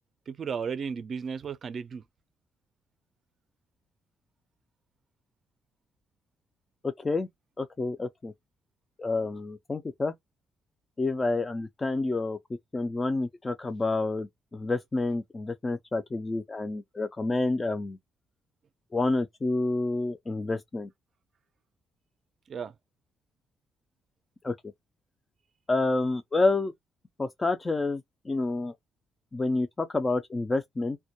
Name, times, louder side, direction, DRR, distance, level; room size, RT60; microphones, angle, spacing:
voice 1, 0.3-2.0 22.5-22.7, right 6 dB, 50° right, 0.4 m, -34 dB
voice 2, 6.8-7.3 7.6-8.3 9.0-10.1 11.0-12.4 12.7-18.0 18.9-20.9 24.4-24.5 25.7-26.7 27.2-28.7 29.3-31.0, left 2 dB, 25° left, 0.3 m, -28 dB
2.2 x 2.0 x 2.7 m
cardioid pair, 90°, 0 cm